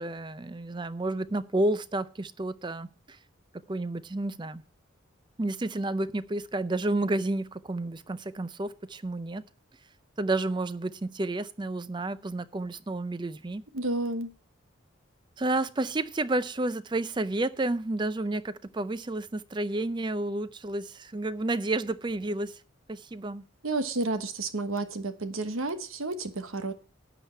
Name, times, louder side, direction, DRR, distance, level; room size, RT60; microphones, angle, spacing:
voice 1, 0.0-3.2 3.7-4.6 5.4-9.4 10.2-13.6 15.4-22.6 22.9-23.4, right 2 dB, 20° right, 0.5 m, -31 dB
voice 2, 13.7-14.3 23.6-26.7, right 2 dB, 85° right, 1.2 m, -31 dB
12.0 x 8.3 x 4.4 m
head